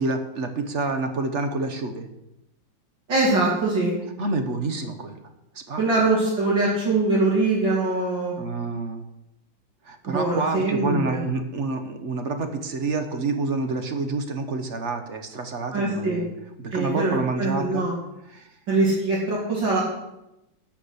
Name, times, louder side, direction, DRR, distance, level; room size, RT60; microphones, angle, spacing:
voice 1, 0.0-2.1 4.2-5.2 5.5-5.8 8.4-9.0 9.8-16.3 16.6-17.9 18.3-18.6, right 3 dB, 45° right, 7 dB, 1.2 m, -28 dB
voice 2, 3.1-3.9 5.8-8.4 10.1-11.2 15.7-16.2 16.7-17.9 18.7-19.8, right 2 dB, 65° right, -7 dB, 3.6 m, -23 dB
12.0 x 6.0 x 8.3 m, 0.89 s
omnidirectional pair, 2.2 m